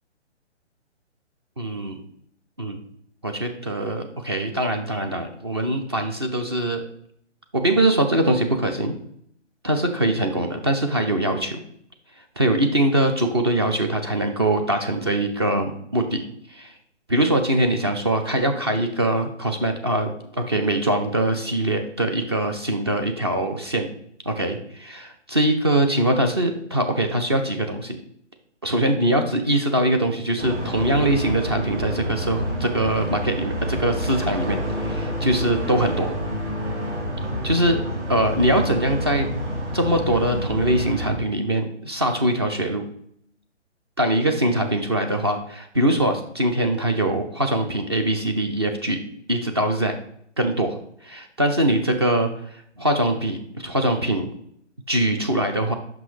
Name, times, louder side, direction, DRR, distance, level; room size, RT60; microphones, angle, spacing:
voice 1, 1.6-2.0 2.6-2.8 3.2-6.8 7.5-8.9 9.6-11.6 12.4-16.2 16.5-16.7 17.1-23.9 24.3-28.0 28.6-36.1 37.4-37.8 38.1-39.3 39.7-42.8 44.0-49.0 49.3-50.0 50.4-50.8 51.0-52.3 52.8-54.3 54.9-55.7, right 1 dB, 20° right, 5 dB, 0.4 m, -22 dB
sound 1, 30.4-41.1, equal, 75° right, 3.2 m, -28 dB
5.9 x 5.7 x 4.9 m, 0.68 s
hypercardioid pair, 145°, 36 cm